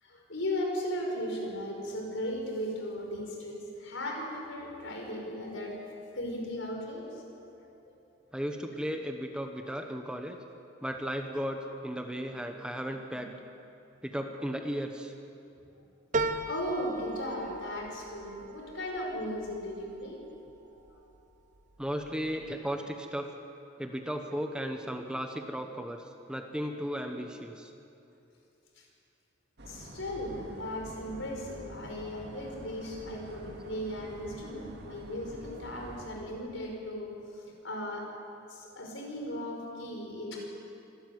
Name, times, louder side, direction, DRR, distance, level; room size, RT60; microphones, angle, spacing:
voice 1, 0.0-8.0 16.5-20.2 20.9-21.0 22.3-22.4 28.8-28.9 29.7-38.1 38.5-40.4, left 1 dB, 75° left, 0 dB, 5.4 m, -37 dB
voice 2, 8.3-10.4 10.8-13.3 14.0-15.1 21.8-23.3 23.8-27.7, equal, 5° right, 4 dB, 1.1 m, -35 dB
sound 1, 16.1-20.9 21.4-22.1 22.4-22.5, right 2 dB, 40° right, 1.0 m, -37 dB
sound 2, 29.6-36.7, right 1 dB, 55° right, 2.3 m, -47 dB
25.5 x 12.5 x 9.6 m, 2.7 s
head